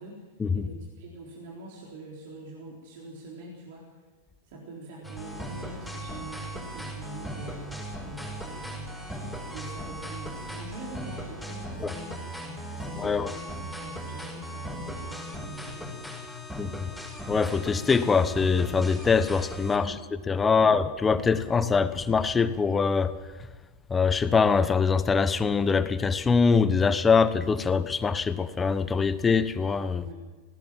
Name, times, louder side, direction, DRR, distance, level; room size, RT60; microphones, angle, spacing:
voice 1, 0.5-3.9 4.5-9.0 9.5-12.2 12.4-16.5 19.8-20.0 20.5-20.8 30.0-30.1, right 2 dB, 55° right, -2 dB, 3.9 m, -44 dB
sound 1, 5.0-19.8, equal, ahead, 6.5 m, -38 dB
voice 2, 13.0-13.3 16.6-16.8 17.3-19.9 20.3-23.1 23.9-30.0, left 5 dB, 15° left, 13 dB, 1.1 m, -23 dB
19.0 x 18.0 x 7.5 m, 1.3 s
figure-of-eight pair, 95°, 0 cm